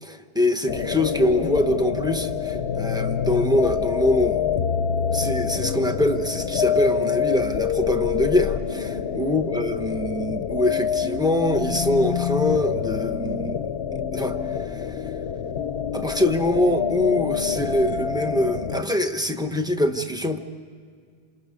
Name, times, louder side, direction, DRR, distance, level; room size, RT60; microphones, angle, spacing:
voice 1, 0.0-4.6 5.1-13.6 14.1-14.4 14.7-15.0 15.9-20.4, left 1 dB, 5° right, 6 dB, 1.1 m, -24 dB
sound 1, 0.7-18.8, left 8 dB, 90° left, 1.0 m, -26 dB
28.0 x 27.5 x 5.3 m, 2.1 s
omnidirectional pair, 1.0 m